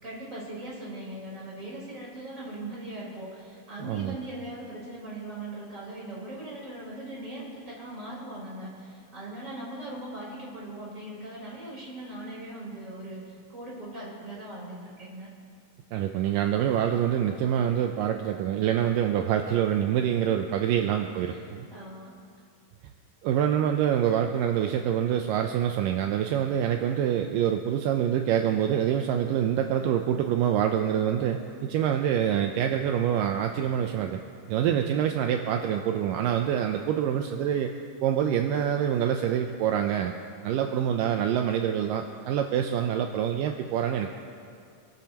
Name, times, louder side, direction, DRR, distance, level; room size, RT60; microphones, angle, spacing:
voice 1, 0.0-15.3 21.2-22.1, right 1 dB, 20° right, -5 dB, 4.2 m, -40 dB
voice 2, 3.8-4.2 15.9-21.7 23.2-34.2 34.5-37.7 38.0-40.1 40.4-44.2, right 9 dB, 80° right, 4 dB, 2.0 m, -26 dB
27.0 x 13.5 x 2.9 m, 2.4 s
omnidirectional pair, 4.5 m